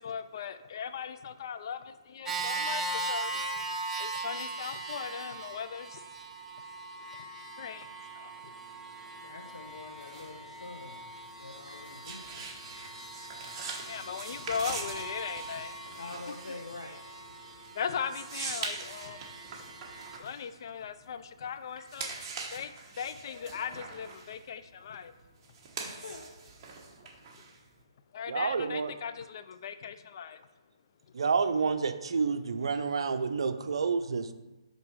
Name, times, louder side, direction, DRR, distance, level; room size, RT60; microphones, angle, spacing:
voice 1, 0.0-3.6 4.0-6.0 7.6-7.9 8.1-8.3 13.8-15.8 17.7-19.3 20.2-22.1 22.5-25.1 28.1-30.4, left 7 dB, 50° left, 11 dB, 0.4 m, -38 dB
sound 1, 2.3-20.2, right 2 dB, 10° right, 0.6 m, -40 dB
voice 2, 9.2-11.0 11.4-12.5 15.9-17.0 21.8-21.9 25.8-26.3, left 2 dB, 85° left, 2 dB, 0.9 m, -45 dB
sound 2, 9.6-21.3 21.7-27.8, right 4 dB, 30° right, 1.1 m, -43 dB
voice 3, 28.3-28.9 31.1-34.3, right 5 dB, 70° right, 9 dB, 0.5 m, -29 dB
5.4 x 3.9 x 4.8 m, 1.1 s
hypercardioid pair, 150°, 3 cm